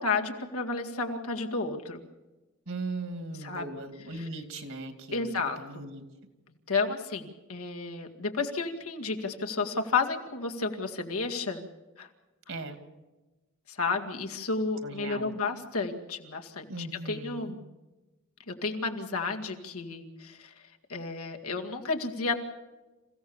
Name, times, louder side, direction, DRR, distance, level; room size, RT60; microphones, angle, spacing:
voice 1, 0.0-2.0 3.4-3.7 4.1-4.3 5.1-5.6 6.7-11.6 12.0-12.1 13.7-17.6 18.5-20.5 20.9-22.4, left 4 dB, 85° left, 3 dB, 2.2 m, -32 dB
voice 2, 2.7-6.0 12.5-12.8 14.8-15.3 16.7-17.6, right 2 dB, 65° right, 8 dB, 2.5 m, -38 dB
27.5 x 16.0 x 7.2 m, 1.1 s
head